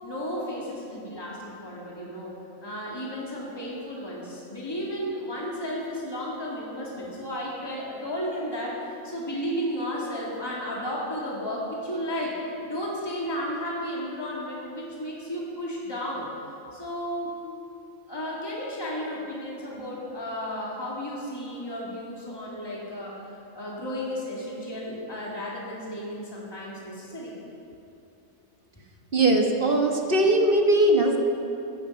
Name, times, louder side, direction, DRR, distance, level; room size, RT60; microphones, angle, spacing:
voice 1, 0.0-2.3 2.6-8.8 9.0-12.3 12.6-16.3 16.7-17.4 18.1-23.1 23.5-27.3, equal, 20° left, -5 dB, 2.5 m, -33 dB
voice 2, 29.1-31.2, right 1 dB, 45° right, 2 dB, 1.3 m, -20 dB
15.0 x 12.5 x 5.7 m, 2.8 s
omnidirectional pair, 1.4 m